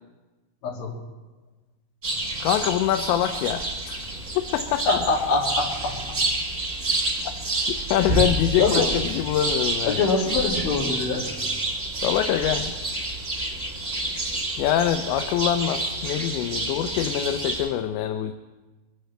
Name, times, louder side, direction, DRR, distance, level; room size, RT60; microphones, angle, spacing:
voice 1, 0.6-0.9 4.9-6.0 8.1-8.2 8.6-8.9 9.9-11.3, left 4 dB, 60° left, -3 dB, 4.1 m, -24 dB
sound 1, 2.0-17.7, right 2 dB, 70° right, 0.7 m, -28 dB
voice 2, 2.4-4.0 4.3-4.9 7.3-7.4 7.6-10.0 12.0-12.7 14.6-18.3, left 11 dB, 80° left, 7 dB, 2.9 m, -24 dB
23.5 x 16.5 x 3.3 m, 1.2 s
omnidirectional pair, 5.2 m